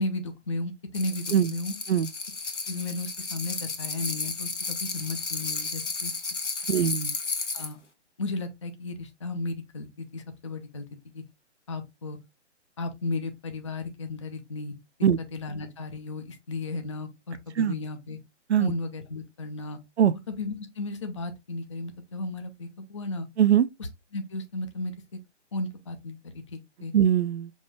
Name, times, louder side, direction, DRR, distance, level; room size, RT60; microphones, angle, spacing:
voice 1, 0.0-1.7 2.7-6.1 7.5-7.8 8.2-11.2 11.7-12.2 12.8-14.7 15.3-18.2 18.6-19.8 20.3-23.3 24.1-24.9 25.5-26.9, left 2 dB, 25° left, 0.4 m, -34 dB
salt and peper shaker, 0.9-7.7, left 4 dB, 75° left, 1.3 m, -33 dB
voice 2, 6.7-7.2 15.0-15.2 17.6-17.7 18.5-18.7 20.0-20.1 23.4-23.7 26.9-27.5, right 9 dB, 65° right, 0.5 m, -21 dB
5.3 x 2.4 x 3.3 m
figure-of-eight pair, 135°, 36 cm